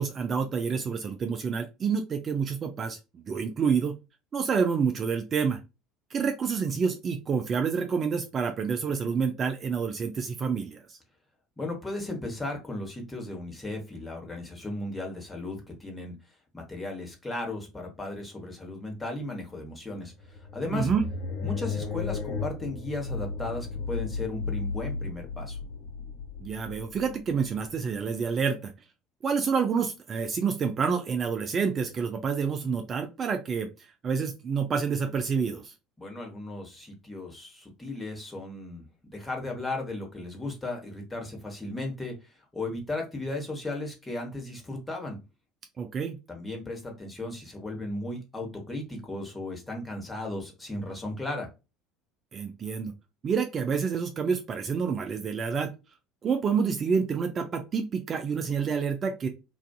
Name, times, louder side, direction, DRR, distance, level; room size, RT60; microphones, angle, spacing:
voice 1, 0.0-3.9 4.3-5.6 6.1-11.0 20.7-21.1 26.4-28.7 29.2-33.7 34.0-35.7 45.8-46.2 52.3-52.9 53.2-55.7 56.2-59.3, right 6 dB, 35° right, 5 dB, 0.4 m, -28 dB
voice 2, 11.6-16.2 16.5-20.1 20.5-20.9 21.4-25.6 36.0-38.8 39.1-45.2 46.3-51.5, left 2 dB, 15° left, 1 dB, 1.1 m, -35 dB
sound 1, 20.0-28.3, left 4 dB, 60° left, 0.8 m, -35 dB
2.4 x 2.4 x 2.3 m, 0.27 s
figure-of-eight pair, 65°, 0 cm